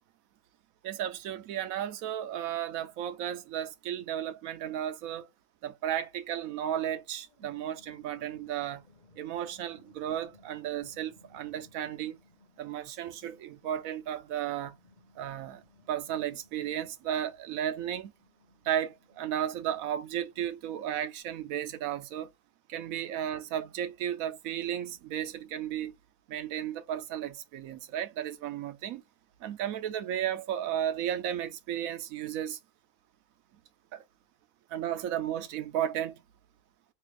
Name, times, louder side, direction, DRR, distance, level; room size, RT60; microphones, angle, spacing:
voice 1, 0.8-5.3 5.6-8.8 9.2-12.2 12.6-14.7 15.2-15.6 15.9-18.1 18.6-22.3 22.7-25.9 26.3-29.0 29.4-32.6 33.9-34.0 34.7-36.2, right 10 dB, 70° right, 1.0 m, -34 dB
sound 1, 6.9-21.2, left 2 dB, 30° left, 1.4 m, -63 dB
3.2 x 2.4 x 3.3 m
omnidirectional pair, 1.6 m